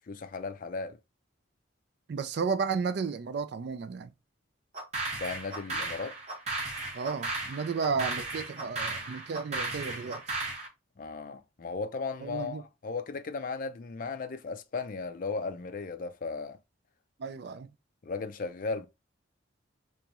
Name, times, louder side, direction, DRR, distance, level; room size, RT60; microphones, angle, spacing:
voice 1, 0.1-1.0 5.1-6.2 11.0-16.6 18.0-18.9, left 4 dB, 45° left, 0.4 m, -36 dB
voice 2, 2.1-4.1 6.9-10.2 12.2-12.6 17.2-17.7, right 5 dB, 55° right, 0.3 m, -33 dB
sound 1, 4.7-10.7, right 2 dB, 35° right, 1.2 m, -35 dB
3.4 x 3.0 x 2.9 m
head